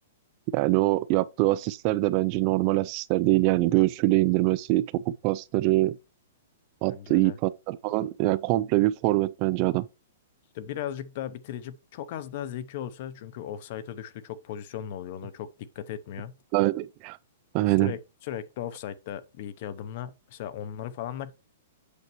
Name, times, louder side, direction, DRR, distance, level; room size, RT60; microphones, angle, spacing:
voice 1, 0.5-6.0 6.8-9.9 16.5-17.2 17.5-17.9, right 18 dB, 35° right, 0.4 m, -24 dB
voice 2, 6.9-7.4 10.5-16.3 17.8-21.3, left 10 dB, 45° left, 0.8 m, -37 dB
8.2 x 6.5 x 3.1 m
hypercardioid pair, 160°, 0 cm